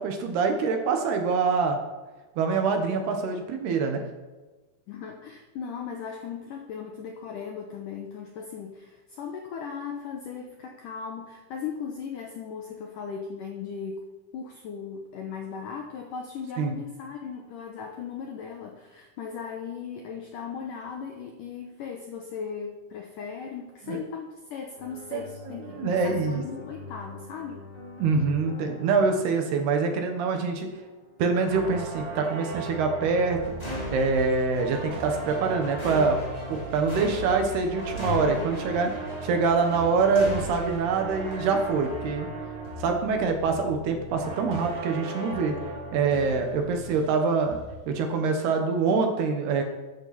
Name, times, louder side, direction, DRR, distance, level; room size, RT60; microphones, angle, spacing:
voice 1, 0.0-1.8 2.4-4.0 16.6-16.7 23.9-24.0 25.1-26.4 28.0-30.7 31.2-36.2 36.5-38.9 39.2-42.3 42.8-45.6 45.9-47.6 47.9-49.6, right 4 dB, 70° right, 5 dB, 3.1 m, -25 dB
voice 2, 4.9-14.1 14.3-27.7, left 6 dB, 80° left, 2 dB, 1.9 m, -37 dB
sound 1, 24.8-40.8, left 1 dB, 10° left, 2.5 m, -39 dB
sound 2, 31.5-47.2 47.5-47.9, right 3 dB, 45° right, 1.7 m, -38 dB
14.0 x 11.5 x 4.2 m, 1.2 s
omnidirectional pair, 5.2 m